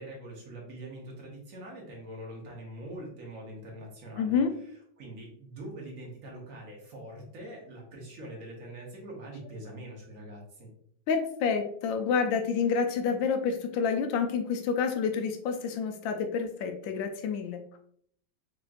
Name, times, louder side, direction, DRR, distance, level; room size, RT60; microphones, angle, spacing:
voice 1, 0.0-4.4 5.0-10.7, right 1 dB, 50° right, -2 dB, 1.4 m, -43 dB
voice 2, 4.2-4.5 11.1-17.6, left 6 dB, 90° left, 6 dB, 1.3 m, -28 dB
4.8 x 2.9 x 2.4 m, 0.64 s
omnidirectional pair, 2.0 m